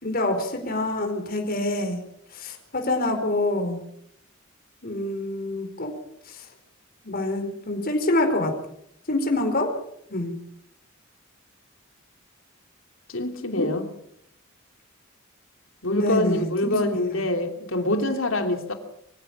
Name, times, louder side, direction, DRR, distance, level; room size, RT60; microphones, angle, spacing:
voice 1, 0.0-2.0 2.3-3.8 4.8-5.9 6.3-6.5 7.0-8.6 9.1-9.7 10.1-10.3 13.5-13.7 15.9-17.2, left 2 dB, 45° left, 4 dB, 4.6 m, -26 dB
voice 2, 13.1-13.9 15.8-18.7, left 1 dB, 70° left, 5 dB, 3.1 m, -25 dB
25.0 x 16.0 x 7.2 m, 0.72 s
head